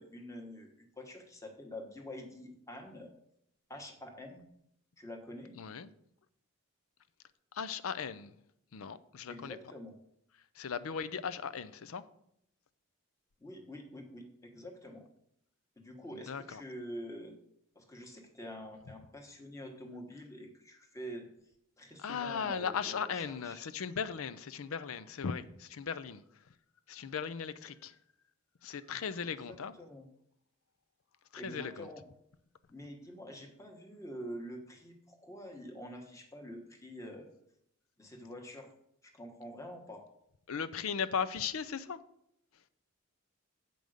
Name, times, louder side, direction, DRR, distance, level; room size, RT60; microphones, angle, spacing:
voice 1, 0.0-3.1 3.7-4.4 5.0-5.5 9.3-9.9 13.4-15.1 15.8-17.4 17.7-21.3 21.8-23.6 27.6-27.7 29.4-30.1 31.3-32.0 32.7-37.3 38.0-38.7 39.0-40.1, equal, 15° left, 1.1 m, -46 dB
voice 2, 5.5-5.9 7.5-8.3 8.7-9.6 10.6-12.0 16.1-16.6 22.0-26.2 26.9-27.9 28.6-29.7 31.3-31.9 40.5-42.0, left 6 dB, 85° left, 0.5 m, -37 dB
7.7 x 5.3 x 6.4 m
head